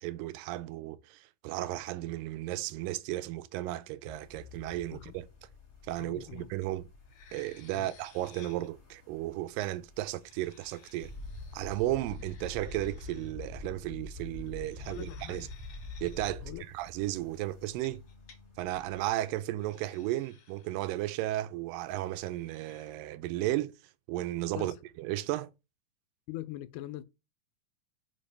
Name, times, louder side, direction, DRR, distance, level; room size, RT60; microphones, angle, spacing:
voice 1, 0.0-5.3 5.9-6.9 7.3-11.1 11.5-15.5 16.0-18.0 18.6-23.8 24.1-25.5, right 15 dB, 90° right, 2.2 m, -34 dB
sound 1, 4.0-19.2, left 5 dB, 20° left, 1.9 m, -58 dB
voice 2, 6.0-6.5 7.7-7.9 14.8-15.5 16.4-16.6 24.6-24.8 26.3-27.0, left 15 dB, 80° left, 2.0 m, -42 dB
sound 2, 6.6-6.7 7.0-8.7 10.0-13.3 14.5-16.3 17.7-18.4 18.8-19.1 19.6-21.1 22.2-22.9, left 6 dB, 55° left, 1.9 m, -59 dB
sound 3, 11.0-16.6, left 2 dB, 5° right, 1.0 m, -43 dB
5.6 x 5.2 x 3.3 m
omnidirectional pair, 3.8 m